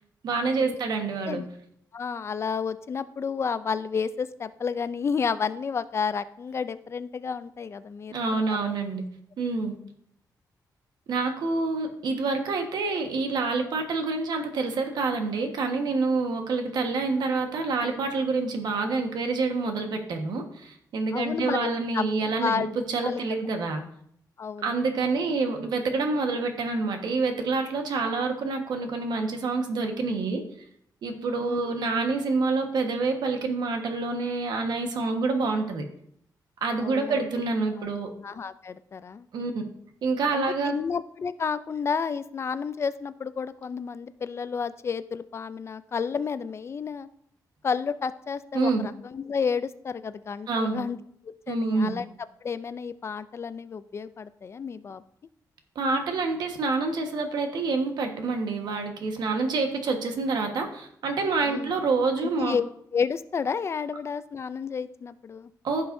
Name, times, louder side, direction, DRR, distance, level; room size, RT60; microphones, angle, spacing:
voice 1, 0.2-1.4 8.1-9.0 9.4-9.8 11.1-23.8 24.6-30.4 31.0-35.8 36.6-38.1 39.3-39.5 40.0-40.7 48.5-48.9 50.5-50.8 51.5-51.9 55.7-62.6 65.6-65.8, right 3 dB, 75° right, 5 dB, 1.3 m, -27 dB
voice 2, 1.9-8.6 21.1-22.7 23.0-23.2 24.4-24.7 31.4-31.7 36.8-37.2 37.8-37.9 38.2-39.3 40.3-47.1 47.6-51.0 51.2-52.1 52.4-55.0 61.5-61.7 62.2-62.6 62.9-65.5, left 6 dB, 40° left, 14 dB, 0.4 m, -31 dB
15.0 x 5.6 x 2.6 m, 0.68 s
wide cardioid pair, 130°, 7 cm